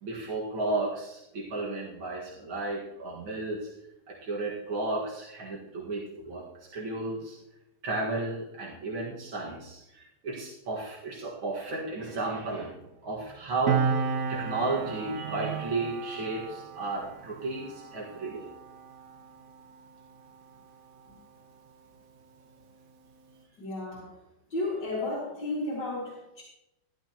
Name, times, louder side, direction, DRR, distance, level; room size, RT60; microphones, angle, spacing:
voice 1, 0.0-3.7 4.1-6.5 6.7-7.4 7.8-18.5, right 2 dB, 85° right, -4 dB, 2.7 m, -33 dB
Piano, 13.7-20.7 21.0-21.2, right 5 dB, 55° right, 1.0 m, -34 dB
voice 2, 23.6-24.2 24.5-26.4, left 2 dB, 65° left, -6 dB, 3.2 m, -33 dB
14.0 x 12.5 x 3.0 m, 0.87 s
omnidirectional pair, 2.2 m